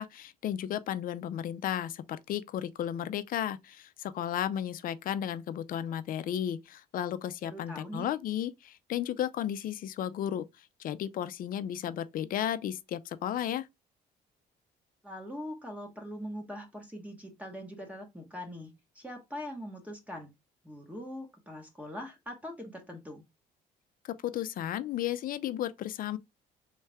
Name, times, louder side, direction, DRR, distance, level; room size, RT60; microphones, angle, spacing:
voice 1, 0.0-13.7 24.2-26.2, left 10 dB, 55° left, 0.5 m, -34 dB
voice 2, 7.4-8.1 15.0-20.3 20.6-23.2, equal, 10° right, 1.1 m, -42 dB
3.2 x 3.1 x 3.4 m
cardioid pair, 110°, 17 cm